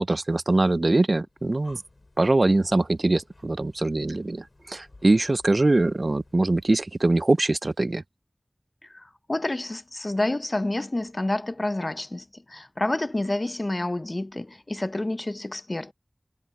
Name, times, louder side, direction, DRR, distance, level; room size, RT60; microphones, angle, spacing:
voice 1, 0.0-1.8 2.2-8.0, right 2 dB, 65° right, 0.4 m, -23 dB
Breathing, 1.2-7.0, left 2 dB, 70° left, 5.0 m, -56 dB
voice 2, 8.9-15.9, left 2 dB, 45° left, 0.5 m, -29 dB
wide cardioid pair, 45°, 0 cm